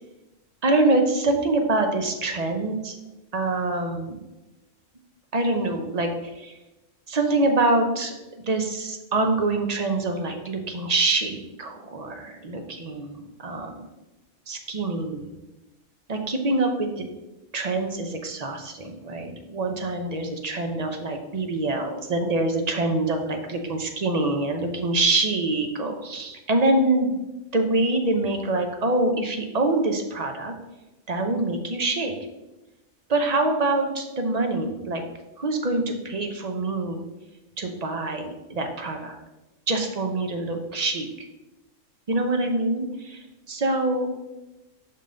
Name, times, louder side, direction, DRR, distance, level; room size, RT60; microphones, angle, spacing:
voice 1, 0.6-2.9 3.3-4.2 5.3-6.5 7.1-13.8 14.5-15.3 16.1-17.0 17.5-27.2 27.5-30.5 31.1-32.1 33.1-35.0 35.4-37.0 37.6-39.2 39.7-41.1 42.1-44.1, right 2 dB, 40° right, 4 dB, 0.7 m, -25 dB
5.7 x 5.3 x 3.8 m, 1.0 s
omnidirectional pair, 1.3 m